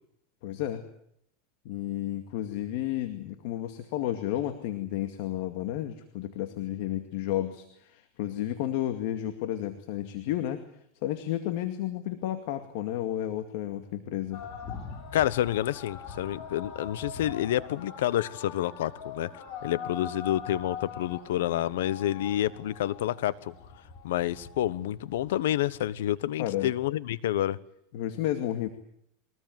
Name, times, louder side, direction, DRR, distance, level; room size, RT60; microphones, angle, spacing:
voice 1, 0.4-0.8 1.6-10.6 11.0-14.5 26.4-26.7 27.9-28.7, left 12 dB, 60° left, 2.2 m, -32 dB
sound 1, 14.3-26.2, left 6 dB, 45° left, 7.3 m, -42 dB
voice 2, 15.1-19.3 19.6-23.5 24.0-27.6, left 13 dB, 80° left, 1.1 m, -29 dB
23.5 x 19.0 x 9.4 m
supercardioid pair, 140°, 0 cm